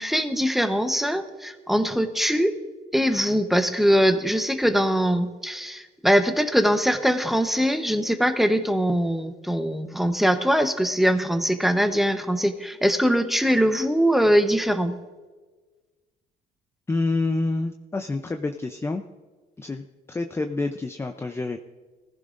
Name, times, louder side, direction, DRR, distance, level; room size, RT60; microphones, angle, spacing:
voice 1, 0.0-2.6 2.9-14.9, equal, ahead, 8 dB, 1.0 m, -22 dB
voice 2, 16.9-19.0 19.6-21.6, left 3 dB, 15° left, 6 dB, 0.6 m, -28 dB
21.0 x 15.0 x 2.6 m, 1.3 s
cardioid pair, 110°, 17 cm